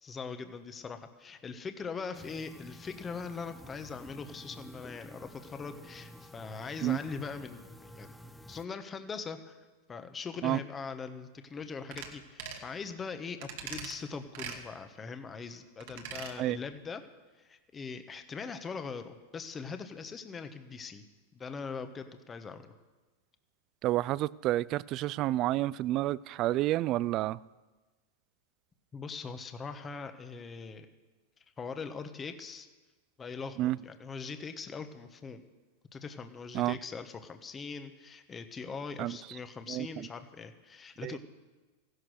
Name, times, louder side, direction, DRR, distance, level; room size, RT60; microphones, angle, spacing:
voice 1, 0.0-8.2 8.5-9.6 9.9-17.0 17.4-21.0 21.3-22.7 28.9-30.9 31.6-32.7 33.2-35.4 35.9-41.2, left 5 dB, 20° left, 1.2 m, -41 dB
sound 1, 2.1-8.6, left 1 dB, 5° left, 0.8 m, -50 dB
sound 2, 11.9-12.1 12.4-12.7 13.4-13.9 14.3-14.6 15.8-16.3 16.7-16.8, right 7 dB, 65° right, 2.3 m, -41 dB
voice 2, 23.8-27.4 33.6-33.8 36.5-36.8 39.0-39.2 39.7-40.1 41.0-41.2, right 15 dB, 40° right, 0.4 m, -30 dB
15.5 x 11.5 x 6.5 m
hypercardioid pair, 115°, 0 cm